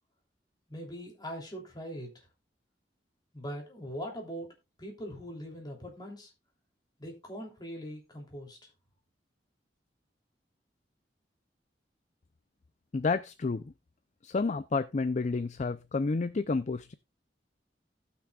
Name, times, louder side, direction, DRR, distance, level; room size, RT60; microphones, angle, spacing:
voice 1, 0.7-2.1 3.3-4.5 4.8-6.3 7.0-8.6, equal, 25° left, 0 dB, 3.1 m, -41 dB
voice 2, 12.9-13.7 14.2-16.9, left 4 dB, 40° left, 13 dB, 0.4 m, -30 dB
18.5 x 6.1 x 2.4 m, 0.24 s
head